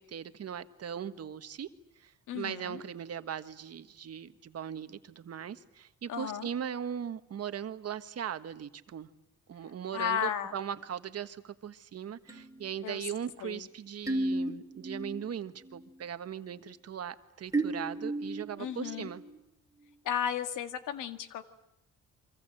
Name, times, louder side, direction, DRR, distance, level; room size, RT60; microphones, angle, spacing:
voice 1, 0.0-1.7 1.9-9.1 9.5-19.2, right 8 dB, 55° right, 10 dB, 1.5 m, -39 dB
voice 2, 2.3-2.8 6.1-6.5 9.9-10.5 12.8-13.1 13.4-13.7 18.6-19.1 20.0-21.4, left 9 dB, 85° left, 9 dB, 1.9 m, -34 dB
sound 1, 12.3-15.3 15.6-16.0 17.5-19.4, right 2 dB, 10° right, 2.9 m, -35 dB
28.0 x 24.5 x 7.8 m, 0.90 s
cardioid pair, 90°, 30 cm